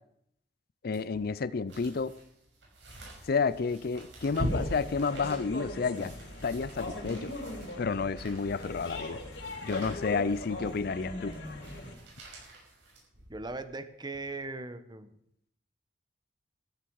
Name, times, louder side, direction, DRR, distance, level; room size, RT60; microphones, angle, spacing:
voice 1, 0.8-2.2 3.3-6.1 6.4-7.3 7.8-9.2 9.6-11.4, left 5 dB, 60° left, 17 dB, 0.5 m, -30 dB
sound 1, 0.9-13.6 14.1-14.2, equal, 85° right, 6.2 m, -43 dB
sound 2, 4.3-11.9, left 1 dB, 85° left, 3.6 m, -40 dB
voice 2, 13.3-15.1, right 2 dB, 25° right, 11 dB, 1.0 m, -39 dB
14.5 x 14.0 x 4.8 m, 0.72 s
head